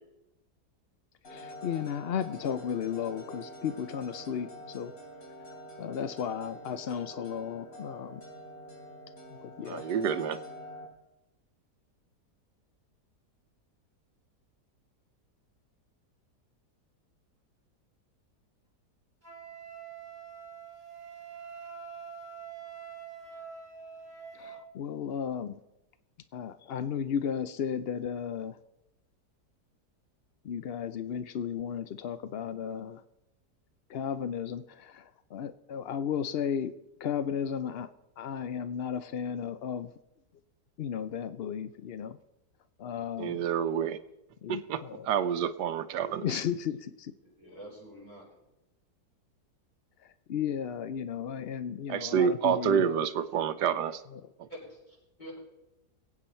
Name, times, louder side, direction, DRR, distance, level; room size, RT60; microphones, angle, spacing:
sound 1, 1.2-10.9, equal, 55° left, 4.3 m, -46 dB
voice 1, 1.3-4.9 5.8-8.2 9.3-9.8 24.3-25.6 26.3-28.6 30.4-33.0 33.9-36.7 37.0-37.9 38.2-39.9 40.8-42.2 42.8-43.5 44.4-45.1 46.2-47.1 50.3-53.0 54.1-54.2, left 8 dB, 80° left, 12 dB, 0.5 m, -34 dB
voice 2, 9.7-10.4 43.2-44.0 44.5-46.4 51.9-54.0 54.4-54.5, right 8 dB, 80° right, 11 dB, 1.3 m, -28 dB
Wind instrument woodwind instrument, 19.2-24.7, right 7 dB, 10° right, 5.3 m, -45 dB
voice 3, 47.2-48.2 54.5-55.4, equal, 25° left, -5 dB, 6.9 m, -47 dB
21.5 x 8.8 x 4.3 m, 0.93 s
omnidirectional pair, 1.8 m